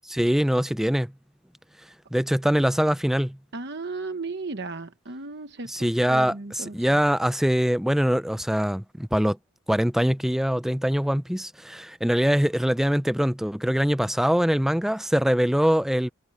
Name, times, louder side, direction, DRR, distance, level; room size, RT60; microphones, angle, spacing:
voice 1, 0.1-1.1 2.1-3.4 5.7-9.4 9.7-16.1, equal, ahead, 0.3 m, -23 dB
voice 2, 3.5-6.7, right 3 dB, 50° right, 1.0 m, -35 dB
head